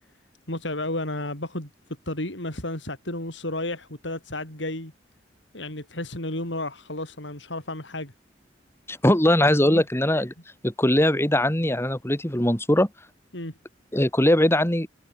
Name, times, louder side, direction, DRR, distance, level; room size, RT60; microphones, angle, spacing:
voice 1, 0.5-1.7 2.1-4.9 5.5-8.1 9.5-9.8 13.3-13.5, left 1 dB, 90° left, 7.2 m, -32 dB
voice 2, 8.9-10.3 10.6-12.9 13.9-14.9, left 1 dB, 15° left, 2.9 m, -21 dB
head